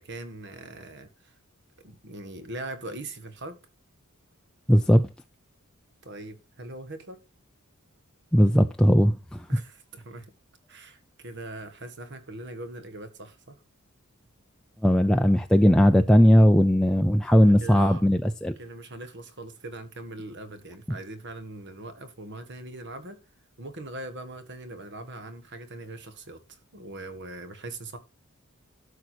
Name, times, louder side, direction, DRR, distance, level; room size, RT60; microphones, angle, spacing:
voice 1, 0.0-1.3 1.8-3.6 6.0-7.2 9.5-10.3 10.7-13.6 17.3-18.1 18.6-23.2 23.6-28.0, right 2 dB, 55° right, 1.8 m, -41 dB
voice 2, 4.7-5.1 8.3-9.5 14.8-18.6, equal, 5° left, 0.5 m, -18 dB
12.5 x 6.5 x 4.5 m
head